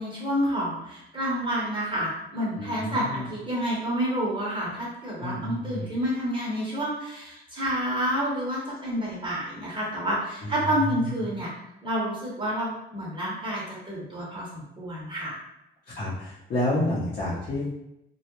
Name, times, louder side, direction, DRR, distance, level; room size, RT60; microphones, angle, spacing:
voice 1, 0.0-11.5 11.8-15.4, equal, 25° right, -6 dB, 0.8 m, -29 dB
voice 2, 2.6-3.3 5.2-5.9 10.4-10.6 10.8-11.2 15.9-17.7, left 1 dB, 50° left, -9 dB, 0.7 m, -30 dB
2.3 x 2.0 x 2.9 m, 0.85 s
cardioid pair, 90°, 20 cm